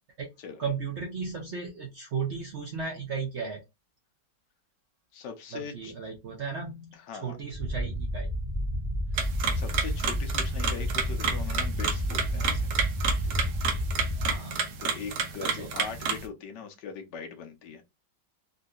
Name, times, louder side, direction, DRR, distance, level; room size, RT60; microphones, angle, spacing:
voice 1, 0.6-3.6 5.5-8.3 14.2-14.8 15.4-15.7, right 5 dB, 55° right, 0.8 m, -35 dB
voice 2, 5.1-5.9 6.9-7.4 9.1-9.3 9.5-12.7 13.2-13.5 14.8-17.8, left 6 dB, 75° left, 1.3 m, -41 dB
sound 1, 7.5-14.4, equal, 10° right, 1.1 m, -30 dB
sound 2, 9.2-16.3, right 6 dB, 75° right, 1.3 m, -31 dB
3.8 x 2.6 x 2.3 m
omnidirectional pair, 1.9 m